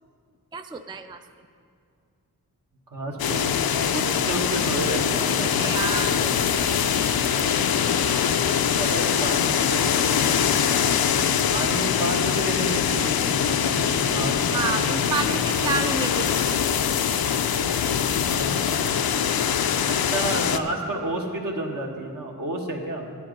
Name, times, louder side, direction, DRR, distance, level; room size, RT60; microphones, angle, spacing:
voice 1, 0.5-1.2 5.6-6.1 14.5-16.4, right 5 dB, 15° right, 7 dB, 0.4 m, -29 dB
voice 2, 2.9-3.6 3.9-6.7 7.3-7.5 8.8-10.6 11.5-15.1 18.0-18.9 19.9-23.1, right 1 dB, 65° right, 0 dB, 1.6 m, -31 dB
sound 1, 3.2-20.6, left 8 dB, 90° left, 0.5 m, -23 dB
12.0 x 10.0 x 5.2 m, 2.3 s
wide cardioid pair, 110°, 35 cm